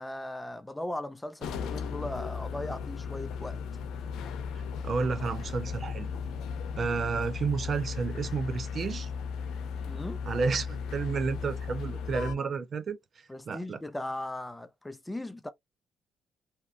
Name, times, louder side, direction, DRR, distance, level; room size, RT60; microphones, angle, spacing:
voice 1, 0.0-3.6 9.9-10.2 13.3-15.5, left 1 dB, 10° left, 0.5 m, -38 dB
sound 1, 1.4-12.3, left 6 dB, 85° left, 0.6 m, -36 dB
voice 2, 4.8-6.1 6.8-9.1 10.3-13.0 13.5-13.8, right 5 dB, 50° right, 0.4 m, -31 dB
2.9 x 2.7 x 2.3 m
cardioid pair, 90°, 0 cm